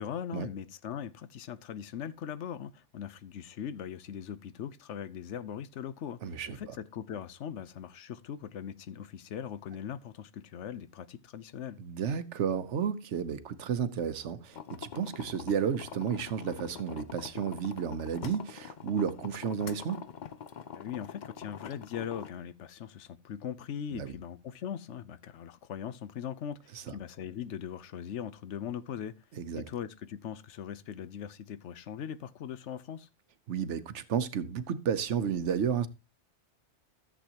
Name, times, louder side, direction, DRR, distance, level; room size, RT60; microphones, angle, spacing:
voice 1, 0.0-11.8 20.7-29.1 29.5-33.1, left 9 dB, 85° left, 1.0 m, -40 dB
voice 2, 6.2-6.6 11.8-20.0 23.9-24.1 26.7-26.8 29.3-29.6 33.5-35.9, right 7 dB, 85° right, 1.1 m, -32 dB
sound 1, 14.5-22.3, left 7 dB, 50° left, 0.7 m, -45 dB
13.5 x 7.7 x 2.9 m
omnidirectional pair, 1.2 m